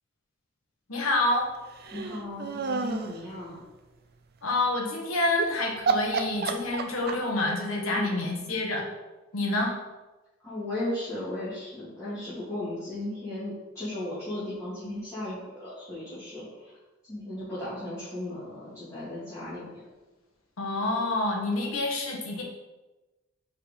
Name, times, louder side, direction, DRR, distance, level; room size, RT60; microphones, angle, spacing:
voice 1, 0.9-1.5 4.4-8.8 9.3-9.7 20.6-22.4, left 2 dB, 80° left, 0 dB, 1.4 m, -27 dB
sound 1, 1.8-3.2 5.3-5.5 5.9-7.4, right 4 dB, 50° right, 0.5 m, -29 dB
voice 2, 1.9-3.6 7.9-8.3 10.4-16.8 17.1-19.8, left 1 dB, 15° left, -12 dB, 2.2 m, -36 dB
4.9 x 4.5 x 5.2 m, 1.1 s
head